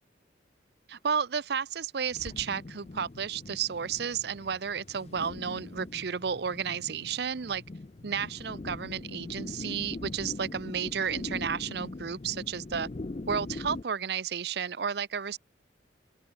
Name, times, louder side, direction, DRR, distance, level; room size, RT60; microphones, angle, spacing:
voice 1, 0.9-7.6 8.0-12.9 13.3-15.4, right 7 dB, 60° right, 0.6 m, -32 dB
sound 1, 2.1-13.8, left 2 dB, 35° left, 0.5 m, -41 dB
open air
head